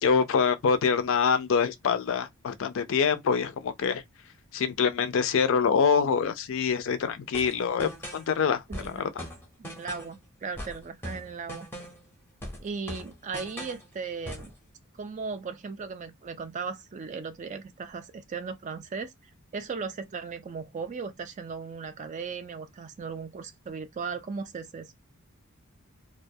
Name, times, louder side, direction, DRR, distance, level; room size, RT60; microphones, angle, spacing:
voice 1, 0.0-4.0 4.5-9.3, left 6 dB, 60° left, 0.4 m, -25 dB
sound 1, 7.3-8.3 8.7-10.2 10.6-12.1 12.4-13.9 14.3-14.6, equal, 10° left, 0.6 m, -40 dB
voice 2, 8.7-9.3 9.6-11.7 12.6-14.5 15.0-19.1 19.5-24.9, right 5 dB, 35° right, 0.3 m, -37 dB
2.3 x 2.2 x 2.6 m
head